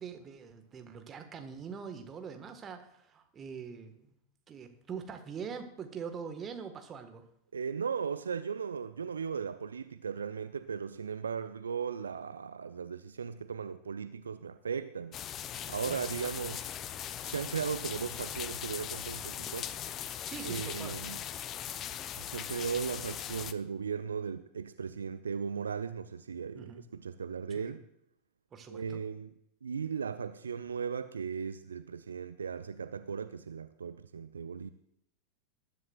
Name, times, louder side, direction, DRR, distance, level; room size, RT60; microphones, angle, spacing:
voice 1, 0.0-4.2 4.5-7.2 15.8-16.3 20.2-21.0 26.5-26.8 27.6-27.7 28.5-29.0, right 6 dB, 25° right, 1.6 m, -43 dB
voice 2, 7.5-15.2 15.7-16.6 17.2-19.7 20.4-21.2 22.2-27.8 28.7-29.3 29.6-34.7, right 6 dB, 70° right, 0.5 m, -37 dB
sound 1, 15.1-23.5, left 10 dB, 30° left, 0.6 m, -39 dB
20.5 x 10.5 x 2.5 m
figure-of-eight pair, 90°, 0 cm